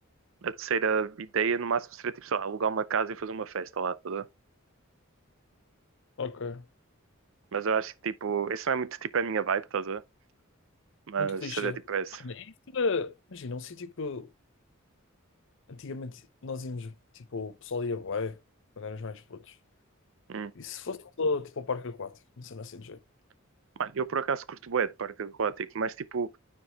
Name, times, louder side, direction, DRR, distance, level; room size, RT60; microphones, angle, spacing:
voice 1, 0.4-4.2 7.5-10.0 11.1-12.2 20.3-20.5 23.8-26.4, right 6 dB, 70° right, 0.5 m, -30 dB
voice 2, 6.2-6.6 11.2-11.8 12.2-12.5 12.7-14.3 15.7-18.4 18.8-19.5 20.5-23.0, left 4 dB, 65° left, 0.7 m, -34 dB
12.5 x 4.6 x 2.2 m
head